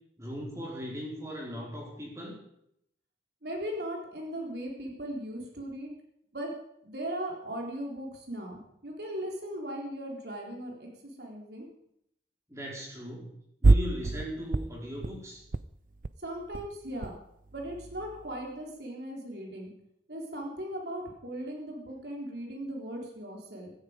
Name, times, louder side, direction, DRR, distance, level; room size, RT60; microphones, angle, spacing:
voice 1, 0.2-2.4 12.5-13.3 13.6-15.4, equal, 15° right, -2 dB, 4.5 m, -38 dB
voice 2, 3.4-5.9 6.3-6.5 6.8-11.7 16.2-17.2 17.5-19.7 20.1-23.7, right 1 dB, 70° right, 0 dB, 3.9 m, -38 dB
sound 1, 13.6-14.3 14.5-15.2 15.4-15.6 15.9-16.1 16.4-17.2 17.5-18.4, right 3 dB, 50° right, 0.5 m, -26 dB
16.0 x 13.5 x 5.2 m, 0.74 s
head